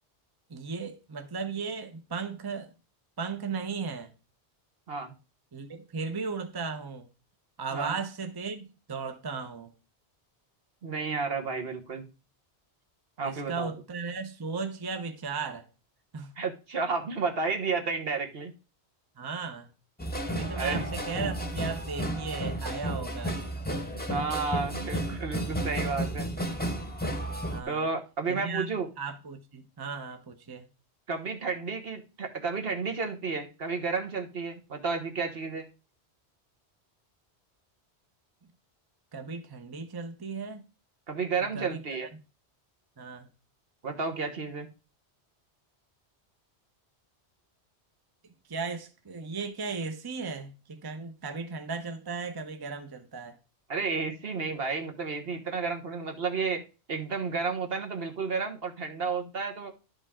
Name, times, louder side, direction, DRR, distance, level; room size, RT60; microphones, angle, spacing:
voice 1, 0.5-2.7 3.2-4.1 5.5-7.1 7.6-9.7 13.2-15.7 16.1-16.3 19.2-19.7 20.3-23.4 27.5-27.9 28.3-30.7 39.1-40.6 41.5-41.8 43.0-43.3 48.5-53.4, right 5 dB, 25° right, 0.8 m, -36 dB
voice 2, 10.8-12.0 13.2-13.7 16.4-18.5 20.6-20.9 24.1-26.3 27.7-28.9 31.1-35.7 41.1-42.1 43.8-44.7 53.7-56.6 56.9-59.7, right 4 dB, 60° right, 1.4 m, -32 dB
sound 1, 20.0-27.6, right 1 dB, 10° left, 0.9 m, -32 dB
11.0 x 5.3 x 3.6 m
omnidirectional pair, 1.1 m